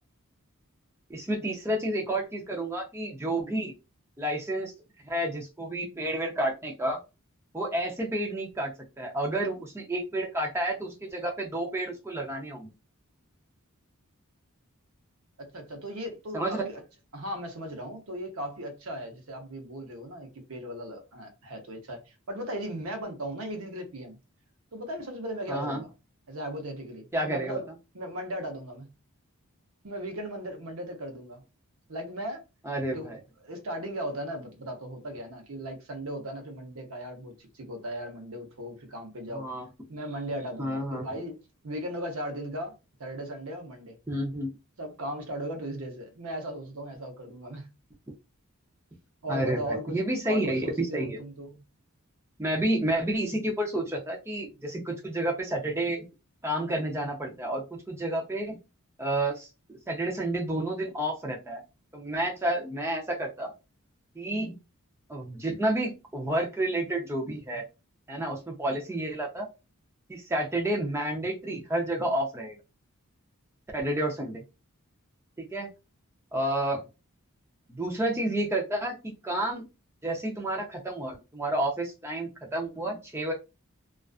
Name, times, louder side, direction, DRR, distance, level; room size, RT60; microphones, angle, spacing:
voice 1, 1.1-3.7 4.2-4.7 5.1-7.0 7.5-8.7 9.0-12.7 16.3-16.6 25.5-25.8 27.1-27.6 32.7-33.2 39.3-39.7 40.6-41.1 44.1-44.6 49.3-51.2 52.4-56.0 56.4-58.6 59.0-61.6 61.9-63.5 64.2-64.6 65.1-67.6 68.1-69.5 70.1-72.6 73.7-74.4 75.5-75.7 76.3-76.8 77.7-79.7 80.0-83.3, right 1 dB, 10° right, 0.5 m, -30 dB
voice 2, 15.4-16.8 17.1-24.2 24.7-25.9 26.3-27.7 27.9-28.9 29.8-31.4 31.9-32.4 32.9-33.1 33.4-39.5 39.9-41.4 41.6-44.0 44.8-47.7 49.2-51.6, equal, 70° right, 0.8 m, -37 dB
2.4 x 2.3 x 2.3 m
head